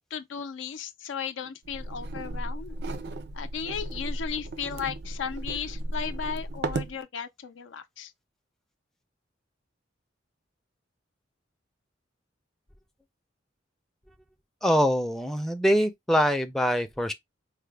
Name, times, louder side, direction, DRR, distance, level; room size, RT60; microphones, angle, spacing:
voice 1, 0.0-2.8 3.3-8.1, left 7 dB, 75° left, 0.5 m, -35 dB
sound 1, 1.6-7.0, right 2 dB, 60° right, 0.5 m, -35 dB
voice 2, 14.6-17.1, equal, ahead, 0.4 m, -24 dB
4.8 x 2.1 x 3.3 m
head